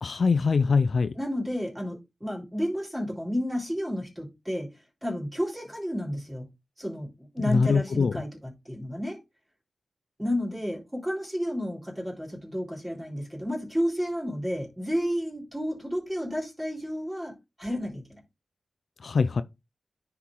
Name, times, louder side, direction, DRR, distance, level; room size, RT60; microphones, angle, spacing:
voice 1, 0.0-1.1 7.4-8.1 19.0-19.4, left 5 dB, 65° left, 0.5 m, -23 dB
voice 2, 1.1-4.7 5.0-6.5 6.8-9.2 10.2-17.3 17.6-18.2, equal, 10° right, 3.9 m, -31 dB
9.8 x 4.5 x 3.7 m
wide cardioid pair, 70°, 0 cm